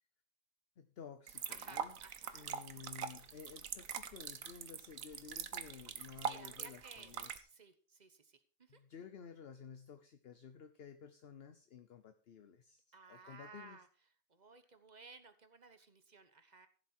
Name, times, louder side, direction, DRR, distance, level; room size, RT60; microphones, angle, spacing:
voice 1, 0.8-2.0 2.3-7.5 8.7-13.8, left 7 dB, 50° left, 9 dB, 0.9 m, -54 dB
sound 1, 1.3-7.4, right 8 dB, 70° right, 1.3 m, -43 dB
voice 2, 1.5-2.5 6.2-7.1 7.5-8.8 12.9-13.9 14.3-16.7, right 4 dB, 35° right, 10 dB, 1.1 m, -57 dB
15.5 x 7.5 x 4.5 m, 0.41 s
omnidirectional pair, 1.5 m